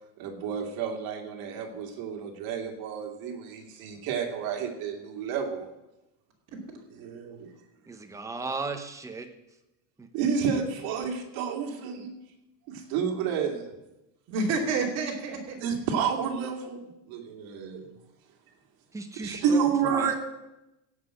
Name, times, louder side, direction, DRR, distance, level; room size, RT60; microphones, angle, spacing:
voice 1, 0.2-5.7 7.0-7.5 10.1-12.2 12.7-13.8 15.6-17.9 19.2-20.2, right 6 dB, 65° right, 3 dB, 2.4 m, -30 dB
voice 2, 7.9-9.3 10.0-10.1 18.9-20.1, right 3 dB, 10° right, 5 dB, 0.9 m, -36 dB
voice 3, 14.3-15.6, right 3 dB, 40° right, -1 dB, 3.0 m, -28 dB
16.0 x 5.7 x 7.7 m, 0.93 s
cardioid pair, 165°, 38 cm